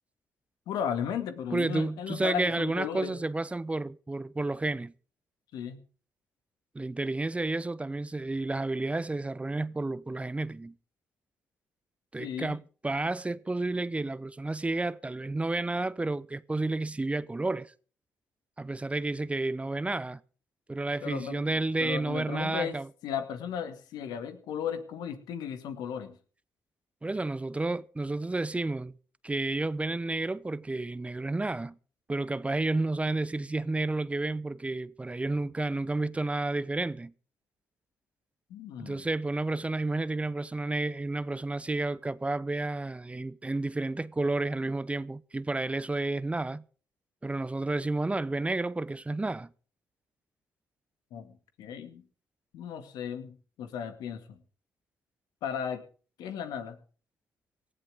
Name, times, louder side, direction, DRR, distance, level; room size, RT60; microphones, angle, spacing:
voice 1, 0.7-3.2 5.5-5.8 12.2-12.6 21.0-21.5 21.8-22.8 23.0-26.1 38.5-39.0 51.1-52.0 52.5-54.4 55.4-55.8 56.2-56.8, left 8 dB, 85° left, 2.1 m, -35 dB
voice 2, 1.5-4.9 6.7-10.7 12.1-17.7 18.6-20.2 20.7-22.9 27.0-28.9 29.2-31.7 32.1-37.1 38.8-46.6 47.2-49.5, right 2 dB, 20° right, 0.8 m, -31 dB
18.5 x 14.5 x 3.6 m
supercardioid pair, 65°, 7 cm